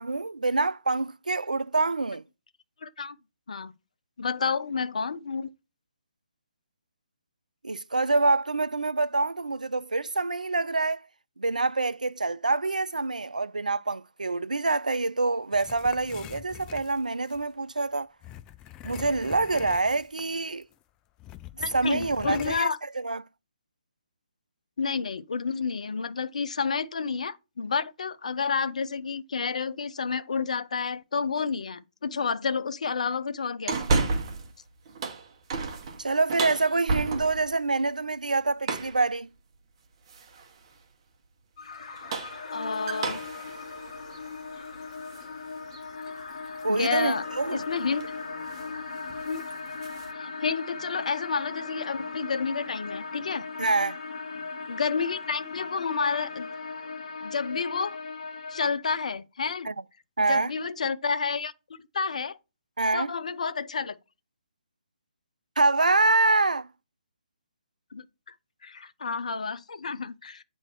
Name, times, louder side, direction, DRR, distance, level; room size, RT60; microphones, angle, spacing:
voice 1, 0.0-2.2 7.6-11.0 11.4-18.1 18.8-20.7 21.7-22.7 23.0-23.2 36.0-39.3 46.6-47.6 53.6-54.0 59.6-59.8 60.2-60.5 62.8-63.1 65.6-66.7, right 3 dB, 85° right, 0.3 m, -26 dB
voice 2, 2.8-3.1 3.5-3.7 4.2-5.5 21.5-22.8 24.8-34.1 42.5-43.2 46.7-47.2 47.5-48.1 49.2-49.5 50.2-53.5 54.7-56.5 57.2-58.0 58.5-59.7 60.2-61.5 61.9-62.4 62.9-64.0 67.9-68.1 68.6-70.4, left 5 dB, 65° left, 0.6 m, -30 dB
sound 1, 15.5-17.4 18.2-20.3 20.6-20.7 21.2-22.6, left 12 dB, 15° left, 0.3 m, -44 dB
sound 2, 33.7-34.5 34.9-37.5 38.6-39.0 40.1-40.5 41.8-45.3 45.7-45.8 47.4-47.6 47.9-48.2 48.5-48.7 49.1-50.1, right 3 dB, 40° right, 1.1 m, -32 dB
sound 3, 41.6-58.7, left 4 dB, 45° left, 1.4 m, -38 dB
8.6 x 3.2 x 4.5 m
figure-of-eight pair, 140°, 4 cm